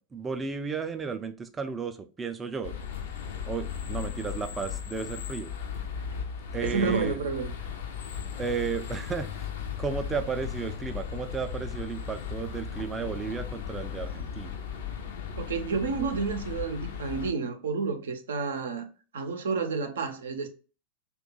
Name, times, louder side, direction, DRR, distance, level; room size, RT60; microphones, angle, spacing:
voice 1, 0.0-2.8 3.4-5.5 6.5-7.2 8.4-9.5 9.8-14.6, right 5 dB, 15° right, 0.4 m, -33 dB
sound 1, 2.6-17.3, left 7 dB, 55° left, 0.5 m, -36 dB
voice 2, 6.6-7.5 15.4-18.9 19.1-20.5, right 5 dB, 65° right, 0.5 m, -30 dB
2.8 x 2.2 x 3.8 m
figure-of-eight pair, 90°, 0 cm